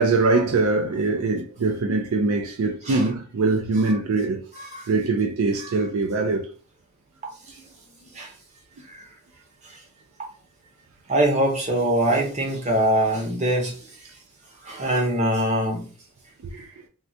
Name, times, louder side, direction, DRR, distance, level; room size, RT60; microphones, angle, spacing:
voice 1, 0.0-4.5 4.9-6.5 16.4-16.8, right 3 dB, 75° right, 0.4 m, -23 dB
voice 2, 4.6-4.9 5.6-5.7 7.5-7.6 8.0-8.3 8.9-9.1 10.2-10.3 11.1-13.8 14.6-15.9, right 1 dB, 30° right, 0.8 m, -23 dB
3.6 x 2.2 x 2.6 m
head